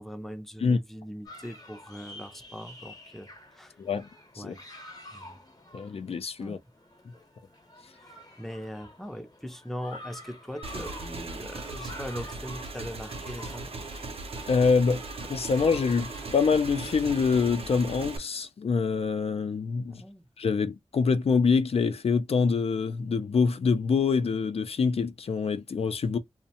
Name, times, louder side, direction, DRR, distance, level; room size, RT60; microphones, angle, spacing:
voice 1, 0.0-3.3 3.5-3.8 4.4-4.6 5.1-5.4 6.4-6.6 8.4-13.7 19.9-20.3, equal, 5° left, 0.5 m, -40 dB
sound 1, 1.2-18.0, left 1 dB, 40° left, 0.8 m, -49 dB
voice 2, 3.8-4.1 4.4-4.6 5.7-6.6 14.5-15.0 15.3-20.0 20.4-26.2, left 5 dB, 70° left, 0.4 m, -25 dB
Motorcycle / Engine, 10.6-18.2, right 3 dB, 65° right, 0.6 m, -38 dB
2.5 x 2.1 x 2.8 m
wide cardioid pair, 90°, 11 cm